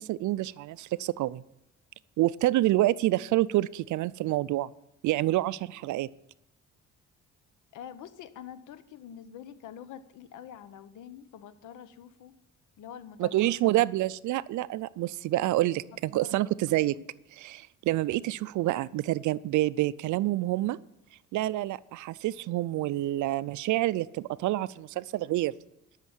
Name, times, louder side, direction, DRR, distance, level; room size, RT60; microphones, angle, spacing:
voice 1, 0.0-1.4 2.2-4.7 5.0-6.1 13.2-17.0 17.4-20.8 21.3-25.5, right 16 dB, 75° right, 18 dB, 0.5 m, -27 dB
voice 2, 7.7-12.4 12.8-13.5 16.1-16.4 17.0-17.1, left 9 dB, 85° left, 13 dB, 1.0 m, -46 dB
12.5 x 6.5 x 8.8 m, 0.86 s
cardioid pair, 90°, 30 cm